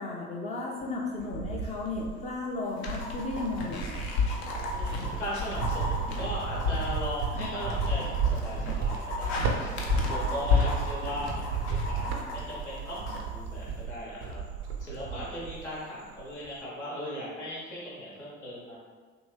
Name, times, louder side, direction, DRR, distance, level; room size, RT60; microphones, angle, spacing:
voice 1, 0.0-4.1, left 2 dB, 20° left, -2 dB, 0.4 m, -34 dB
Cricket, 0.8-2.3 2.8-15.8 16.1-16.6, right 6 dB, 65° right, 0.6 m, -34 dB
sound 1, 1.9-2.0 2.2-2.3 2.9-13.2 14.9-15.0, left 1 dB, 35° left, 0.8 m, -39 dB
sound 2, 2.8-12.6, left 5 dB, 70° left, 0.6 m, -32 dB
voice 2, 4.7-14.4 14.8-18.8, equal, 85° left, -6 dB, 0.9 m, -38 dB
2.8 x 2.6 x 3.1 m, 1.5 s
figure-of-eight pair, 60°, 34 cm